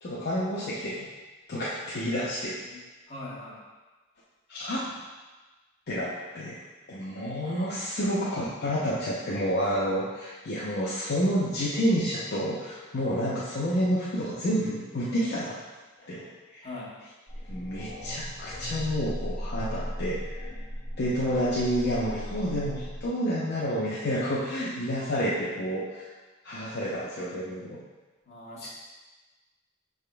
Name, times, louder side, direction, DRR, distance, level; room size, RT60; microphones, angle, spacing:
voice 1, 0.0-1.1 1.5-2.6 4.5-4.9 5.9-6.6 6.9-15.6 16.0-16.7 17.5-20.5 21.0-26.1 26.4-27.8 28.6-28.7, equal, 55° left, -7 dB, 0.6 m, -29 dB
voice 2, 3.1-3.6 16.6-16.9 28.2-28.7, left 2 dB, 30° left, -8 dB, 1.2 m, -41 dB
sound 1, 17.3-23.1, equal, 25° right, 1.5 m, -37 dB
5.8 x 3.5 x 2.2 m, 1.2 s
head